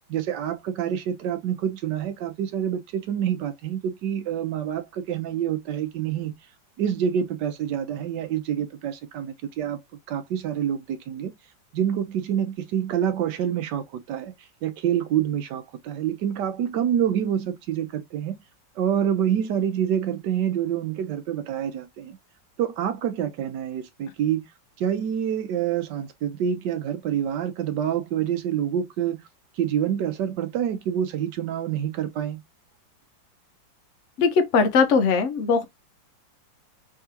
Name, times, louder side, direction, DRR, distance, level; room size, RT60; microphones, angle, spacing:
voice 1, 0.1-6.3 6.8-9.8 10.1-11.3 11.7-14.3 14.6-18.4 18.8-22.2 22.6-24.4 24.8-29.2 29.6-32.4, right 9 dB, 70° right, 1.3 m, -27 dB
voice 2, 34.2-35.6, left 5 dB, 55° left, 0.9 m, -20 dB
3.7 x 3.5 x 2.8 m
omnidirectional pair, 2.0 m